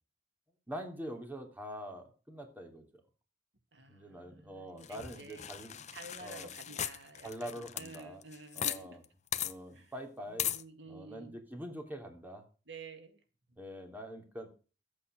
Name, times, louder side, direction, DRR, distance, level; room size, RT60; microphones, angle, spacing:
voice 1, 0.7-2.9 3.9-5.8 6.2-6.5 7.2-8.2 8.5-9.0 9.4-10.5 10.9-12.4 13.6-14.5, equal, 10° right, 3 dB, 3.3 m, -44 dB
voice 2, 3.7-9.0 9.7-9.9 10.3-11.4 12.7-13.2, right 3 dB, 75° right, 7 dB, 2.3 m, -50 dB
sound 1, 4.8-8.8 9.0-9.1 9.3-9.5 10.4-10.6, left 10 dB, 40° left, 0.9 m, -37 dB
14.0 x 8.6 x 6.5 m, 0.36 s
head